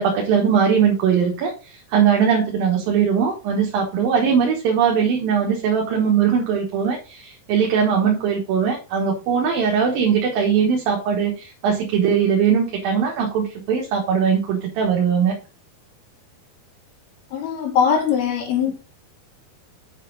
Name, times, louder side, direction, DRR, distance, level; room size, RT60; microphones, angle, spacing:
voice 1, 0.0-15.3, right 7 dB, 75° right, 3.0 m, -20 dB
voice 2, 17.3-18.7, left 7 dB, 80° left, 3.9 m, -21 dB
7.3 x 6.9 x 3.9 m
omnidirectional pair, 4.3 m